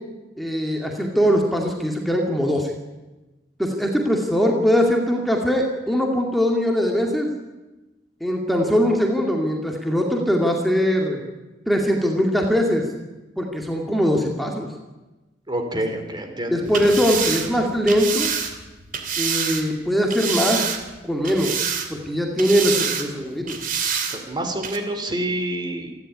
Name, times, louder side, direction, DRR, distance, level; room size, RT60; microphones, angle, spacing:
voice 1, 0.4-2.7 3.6-7.3 8.2-11.2 11.7-12.8 13.4-14.7 16.5-18.3 19.2-20.6 21.0-21.5 22.1-23.6, equal, ahead, 1 dB, 2.4 m, -21 dB
voice 2, 15.5-16.9 24.1-25.9, right 1 dB, 25° right, 5 dB, 3.0 m, -28 dB
sound 1, 16.6-19.6 20.1-21.0 21.2-22.1 22.4-23.1 23.5-24.2 24.6-24.8, right 7 dB, 50° right, 2.7 m, -26 dB
28.0 x 12.0 x 9.9 m, 1.1 s
head